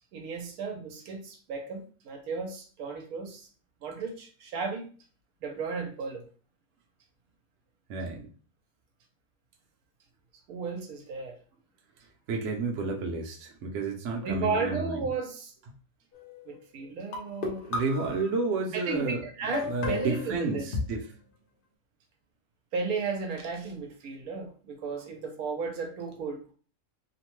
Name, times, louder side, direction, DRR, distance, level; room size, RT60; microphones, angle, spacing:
voice 1, 0.1-3.5 3.8-4.9 5.4-6.3 10.5-11.4 14.2-15.5 16.5-17.6 18.7-20.7 22.7-26.4, right 4 dB, 85° right, 3 dB, 1.1 m, -34 dB
voice 2, 7.9-8.3 12.3-15.0 17.7-19.2 19.6-21.0, right 3 dB, 65° right, 1 dB, 0.9 m, -31 dB
sound 1, 16.1-16.6 17.1-18.5 19.5-20.8, left 3 dB, 50° left, 0.7 m, -34 dB
2.9 x 2.1 x 3.0 m, 0.40 s
omnidirectional pair, 1.5 m